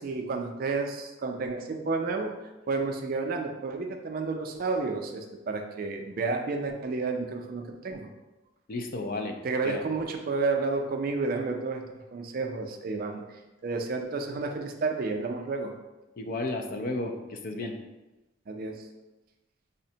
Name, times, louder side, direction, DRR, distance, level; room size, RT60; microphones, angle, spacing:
voice 1, 0.0-2.4 2.7-8.1 9.4-11.8 12.1-13.2 13.6-15.7 18.5-18.8, right 3 dB, 50° right, 3 dB, 0.4 m, -31 dB
voice 2, 8.7-9.4 9.6-9.8 16.2-17.8, left 2 dB, 45° left, 4 dB, 0.4 m, -32 dB
4.9 x 2.1 x 2.7 m, 1.1 s
head